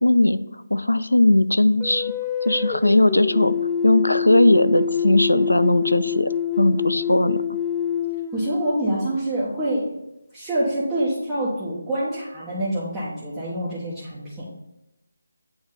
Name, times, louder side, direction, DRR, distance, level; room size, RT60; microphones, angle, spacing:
voice 1, 0.0-0.4 0.7-2.1 2.4-3.5 3.8-7.4, left 1 dB, 80° left, 13 dB, 0.4 m, -18 dB
sound 1, 1.8-9.1, left 7 dB, 10° left, 0.4 m, -26 dB
voice 2, 8.3-10.0 10.3-14.5, right 1 dB, 5° right, -11 dB, 1.2 m, -26 dB
8.7 x 3.1 x 3.8 m, 0.86 s
figure-of-eight pair, 155°, 0 cm